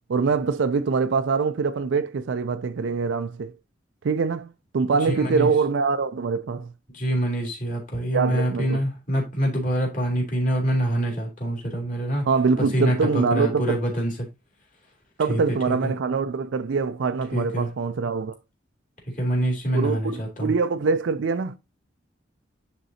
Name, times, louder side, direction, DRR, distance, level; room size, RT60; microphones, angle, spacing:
voice 1, 0.1-3.5 4.0-6.7 8.1-8.8 12.3-13.8 15.2-18.4 19.7-21.6, right 4 dB, 70° right, 0.4 m, -24 dB
voice 2, 5.1-5.5 6.9-12.3 12.6-14.1 15.3-15.4 15.7-15.9 17.3-17.7 19.1-20.5, right 1 dB, 40° left, 2.6 m, -25 dB
10.0 x 3.9 x 2.7 m
head